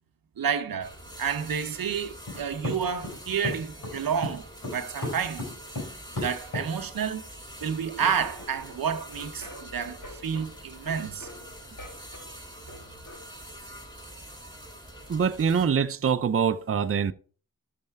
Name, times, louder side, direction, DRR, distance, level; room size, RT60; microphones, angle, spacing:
voice 1, 0.4-0.9 1.2-5.4 6.2-7.3 7.6-11.3, right 7 dB, 85° right, 0.8 m, -30 dB
sound 1, 0.8-15.7, equal, 10° left, 3.0 m, -45 dB
sound 2, 2.3-6.7 7.6-8.4, left 2 dB, 85° left, 5.1 m, -35 dB
sound 3, 8.0-13.2, left 1 dB, 60° left, 2.3 m, -47 dB
voice 2, 15.1-17.1, right 6 dB, 40° right, 0.5 m, -24 dB
12.0 x 6.4 x 3.5 m
cardioid pair, 45°, 34 cm